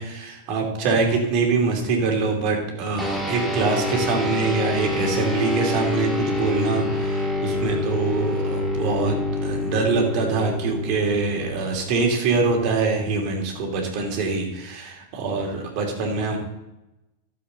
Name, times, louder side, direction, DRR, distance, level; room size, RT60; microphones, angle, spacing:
voice 1, 0.0-16.4, right 4 dB, 45° right, 1 dB, 2.8 m, -24 dB
sound 1, 3.0-12.7, left 2 dB, ahead, 1.9 m, -27 dB
13.0 x 7.3 x 4.0 m, 0.95 s
figure-of-eight pair, 95°, 0 cm